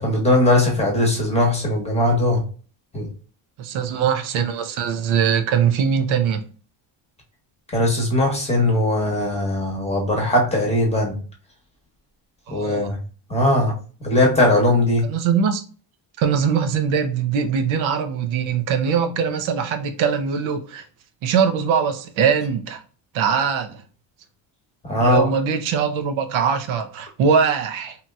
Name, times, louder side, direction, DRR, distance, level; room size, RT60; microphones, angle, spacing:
voice 1, 0.0-2.4 2.9-3.1 7.7-11.2 12.5-13.0 13.3-13.7 14.0-15.1 24.8-25.3, left 1 dB, 15° left, 0.9 m, -19 dB
voice 2, 3.6-6.4 12.5-12.9 15.0-15.6 16.2-20.9 21.2-22.8 23.1-23.8 25.0-28.0, right 7 dB, 80° right, 0.7 m, -21 dB
2.8 x 2.8 x 2.2 m
cardioid pair, 130°, 47 cm